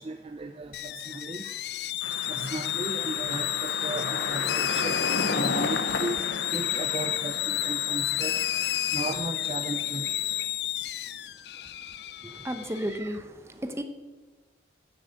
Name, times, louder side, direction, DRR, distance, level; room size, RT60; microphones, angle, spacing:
voice 1, 0.0-1.5 2.3-5.0 5.3-6.2 6.5-8.4 8.9-10.1, right 2 dB, 30° right, 7 dB, 0.5 m, -35 dB
sound 1, 0.7-13.0, left 13 dB, 60° left, 0.4 m, -31 dB
sound 2, 2.0-10.4, left 3 dB, 85° left, 0.9 m, -34 dB
voice 2, 12.2-13.8, equal, 15° right, 8 dB, 0.9 m, -33 dB
10.0 x 7.6 x 7.8 m, 1.3 s
head